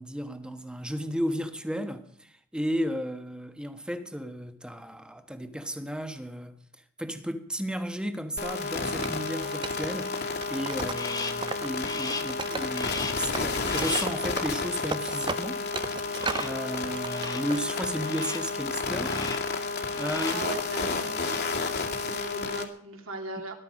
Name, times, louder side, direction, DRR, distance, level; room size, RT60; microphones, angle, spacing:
voice 1, 0.0-6.6 7.0-10.1 10.5-16.0 16.4-19.2 19.9-20.4, equal, 5° right, 1.3 m, -34 dB
sound 1, 8.4-22.6, left 4 dB, 50° left, 2.2 m, -31 dB
Wood, 9.0-11.7 12.0-13.0 13.3-16.6 16.9-17.6, right 4 dB, 20° right, 0.5 m, -36 dB
Crow, 10.9-11.5 11.8-12.4 12.7-13.3 13.7-14.2 16.1-16.7 17.0-17.6 18.0-18.6 19.0-19.6 19.9-20.5, left 4 dB, 20° left, 1.3 m, -37 dB
voice 2, 20.2-21.6 22.0-23.5, right 2 dB, 70° right, 3.1 m, -38 dB
19.5 x 12.0 x 5.3 m
head